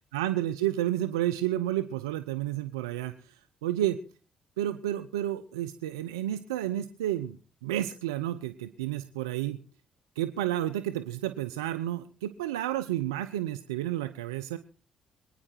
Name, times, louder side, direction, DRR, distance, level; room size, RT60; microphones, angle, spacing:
voice 1, 0.1-3.4 3.6-4.0 4.6-7.4 7.6-9.6 10.2-14.6, right 13 dB, 90° right, 10 dB, 0.6 m, -31 dB
24.5 x 10.0 x 4.5 m, 0.38 s
hypercardioid pair, 50°, 2 cm